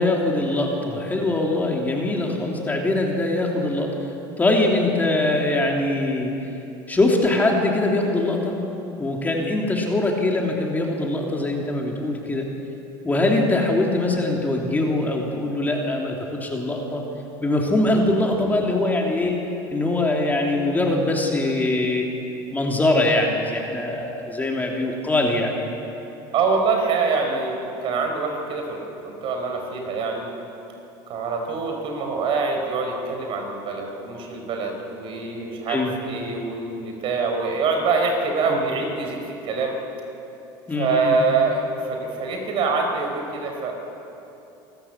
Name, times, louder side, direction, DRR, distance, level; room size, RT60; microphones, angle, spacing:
voice 1, 0.0-3.9 4.4-6.5 6.9-8.5 9.0-12.5 13.0-17.0 17.4-19.4 19.7-22.1 22.5-25.5 35.7-35.9 38.5-38.6 40.7-41.1, left 2 dB, 15° left, 0 dB, 3.1 m, -22 dB
voice 2, 26.3-30.3 31.1-39.8 40.7-43.7, right 4 dB, 55° right, 3 dB, 4.7 m, -25 dB
27.0 x 13.5 x 8.3 m, 2.9 s
supercardioid pair, 105°, 11 cm